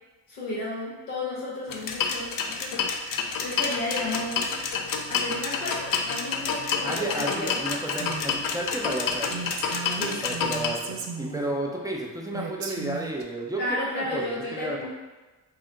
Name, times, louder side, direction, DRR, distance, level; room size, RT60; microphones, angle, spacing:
voice 1, 0.3-2.3 2.6-2.9 3.4-4.6 5.1-7.6 10.0-10.2 13.6-14.9, left 1 dB, 85° left, -6 dB, 1.0 m, -32 dB
sound 1, 1.7-10.7, left 5 dB, 45° left, 0.5 m, -29 dB
voice 2, 6.8-9.4 10.2-14.9, right 1 dB, 10° right, -1 dB, 0.5 m, -32 dB
Female speech woman speaking, 7.9-8.5 8.9-9.0 9.3-11.6 12.3-13.2, right 5 dB, 50° right, 0.6 m, -36 dB
2.9 x 2.1 x 3.8 m, 1.2 s
hypercardioid pair, 40°, 50 cm